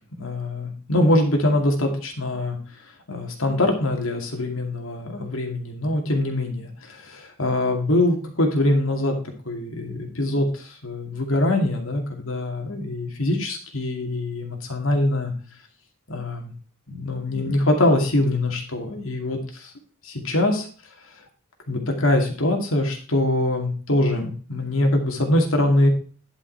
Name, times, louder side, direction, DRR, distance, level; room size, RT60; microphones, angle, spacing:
voice 1, 0.2-2.6 3.1-9.1 9.5-15.3 16.1-16.5 16.9-19.7 20.0-20.7 21.7-25.9, left 1 dB, 75° left, 2 dB, 2.5 m, -23 dB
11.5 x 5.7 x 4.7 m, 0.39 s
head